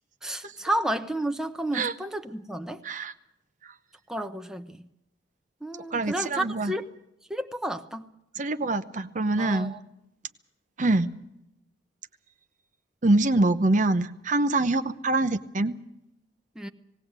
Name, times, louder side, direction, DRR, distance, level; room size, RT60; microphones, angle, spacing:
voice 1, 0.2-2.8 4.1-4.9 5.6-6.8 7.3-8.1 9.4-9.8 16.6-16.7, right 1 dB, 5° right, 0.9 m, -31 dB
voice 2, 5.9-6.7 8.3-9.8 10.8-11.1 13.0-15.7, right 2 dB, 45° right, 0.8 m, -25 dB
18.5 x 17.5 x 8.1 m
head